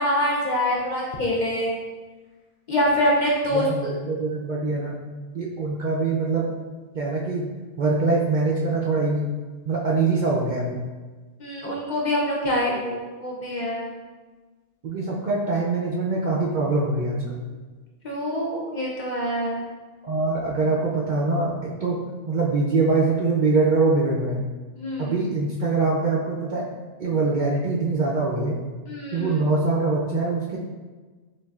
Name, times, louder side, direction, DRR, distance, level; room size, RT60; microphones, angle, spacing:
voice 1, 0.0-1.8 2.7-3.9 11.4-13.9 18.0-19.6 24.8-25.2 28.9-29.4, equal, 55° left, -4 dB, 0.6 m, -25 dB
voice 2, 3.5-5.0 5.3-6.5 6.9-7.4 7.8-9.2 9.6-10.8 14.8-17.4 20.0-22.0 22.3-24.5 25.0-26.6 27.0-28.6 29.1-30.6, right 3 dB, 60° right, -3 dB, 0.5 m, -23 dB
6.0 x 2.6 x 2.3 m, 1.3 s
omnidirectional pair, 1.2 m